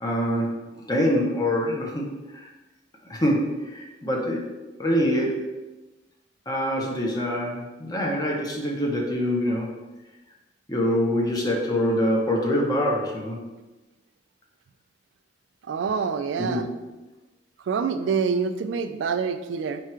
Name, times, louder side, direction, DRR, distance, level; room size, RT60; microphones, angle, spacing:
voice 1, 0.0-2.0 2.3-2.5 3.1-4.5 4.8-5.5 6.5-9.7 10.7-13.4 16.4-16.6, equal, 20° left, -2 dB, 0.8 m, -25 dB
voice 2, 15.7-16.7 17.7-19.8, right 5 dB, 90° right, 10 dB, 0.3 m, -26 dB
4.5 x 2.4 x 4.3 m, 1.1 s
head